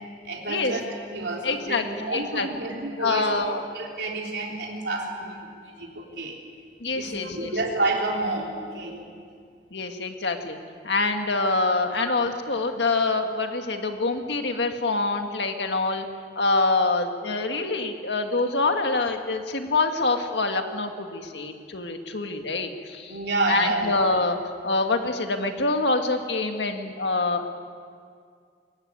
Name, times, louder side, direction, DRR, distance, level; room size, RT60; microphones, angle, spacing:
voice 1, 0.2-3.3 3.7-6.4 6.9-9.1 11.9-12.1 23.1-23.9, right 2 dB, 70° right, -1 dB, 3.5 m, -29 dB
voice 2, 1.4-2.5 3.0-3.6 6.8-7.5 9.7-10.6 10.8-16.1 16.4-23.2 23.5-24.4 24.6-27.5, left 3 dB, 75° left, 5 dB, 1.8 m, -25 dB
22.0 x 17.0 x 9.6 m, 2.2 s
head